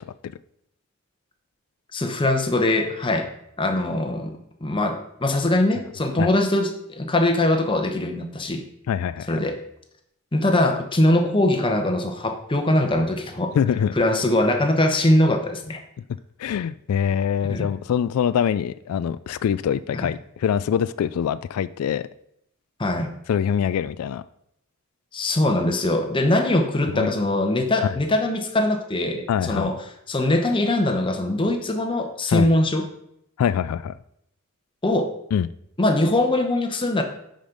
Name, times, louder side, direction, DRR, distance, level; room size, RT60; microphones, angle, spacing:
voice 1, 1.9-3.3 3.6-8.6 9.3-9.6 10.3-13.5 14.0-15.8 17.5-17.7 19.9-20.1 22.8-23.1 25.1-29.7 30.1-32.8 34.8-35.1 35.8-37.0, left 1 dB, 25° left, 5 dB, 0.9 m, -22 dB
voice 2, 8.9-9.4 13.5-13.9 16.4-22.1 23.3-24.2 26.9-27.1 27.8-27.9 29.3-29.8 32.3-32.5 33.4-33.9 35.3-35.5, left 8 dB, 85° left, 15 dB, 0.3 m, -24 dB
10.0 x 5.2 x 3.9 m, 0.75 s
head